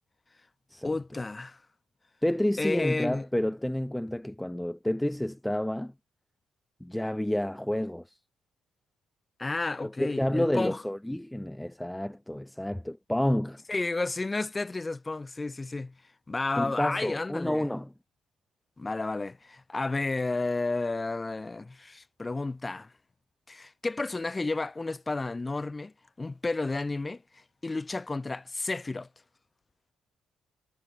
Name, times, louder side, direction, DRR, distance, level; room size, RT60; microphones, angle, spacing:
voice 1, 0.8-1.6 2.6-3.3 9.4-10.8 13.7-15.9 16.3-17.7 18.8-22.9 23.5-29.1, left 3 dB, 20° left, 4.1 m, -32 dB
voice 2, 2.2-5.9 6.8-8.0 9.8-13.6 16.6-17.9, left 1 dB, 5° left, 1.6 m, -29 dB
cardioid pair, 90°, 0 cm